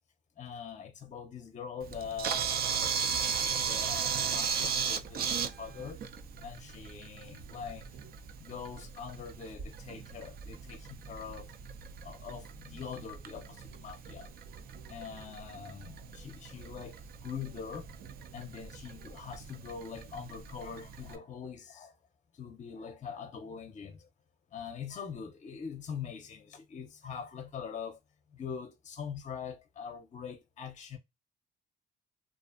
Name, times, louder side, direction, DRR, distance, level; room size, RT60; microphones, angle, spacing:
voice 1, 0.4-2.5 3.5-6.0 6.4-7.9 8.4-11.5 12.0-14.3 14.9-17.9 18.3-22.0 22.3-24.1 24.5-28.0 28.3-31.0, left 7 dB, 40° left, 0.6 m, -43 dB
Camera, 1.8-21.1, right 6 dB, 50° right, 0.4 m, -37 dB
2.4 x 2.4 x 2.4 m
cardioid pair, 90°, 20 cm